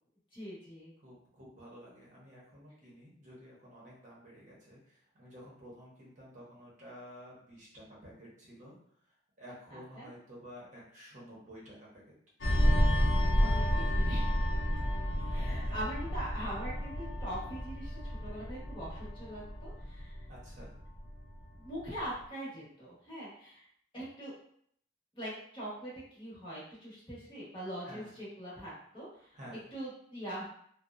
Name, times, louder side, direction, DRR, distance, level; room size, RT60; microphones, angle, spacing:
voice 1, 0.3-0.9 9.7-10.1 13.4-14.3 15.3-20.3 21.6-23.7 23.9-24.3 25.1-29.4 29.7-30.4, right 1 dB, 25° left, -7 dB, 0.9 m, -42 dB
voice 2, 1.0-8.7 9.4-12.0 15.1-15.7 20.3-20.7 27.8-28.1 29.3-29.6, equal, 40° right, -5 dB, 0.7 m, -51 dB
sound 1, 12.4-21.4 21.8-22.0, equal, 60° left, 0.5 m, -31 dB
2.8 x 2.0 x 2.4 m, 0.65 s
head